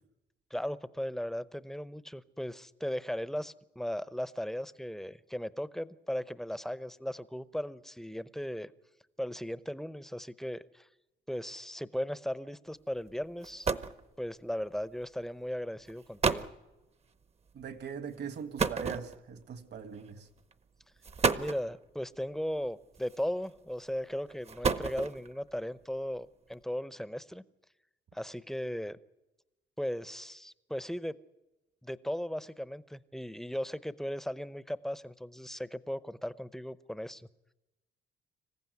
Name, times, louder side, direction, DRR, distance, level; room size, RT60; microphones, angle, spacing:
voice 1, 0.5-8.7 9.2-10.9 11.3-13.7 14.2-16.5 21.3-27.4 28.1-29.0 29.8-31.2 31.8-37.3, equal, ahead, 0.7 m, -37 dB
sound 1, 13.1-13.2 13.4-14.0 15.0-15.2 15.9-16.0 16.2-16.6 18.6-19.4 20.4-20.5 21.0-21.7 23.0-23.4 24.3-25.3, right 5 dB, 30° right, 0.9 m, -31 dB
voice 2, 17.5-20.3, right 7 dB, 60° right, 1.7 m, -41 dB
26.0 x 15.0 x 9.5 m
cardioid pair, 110°, 20 cm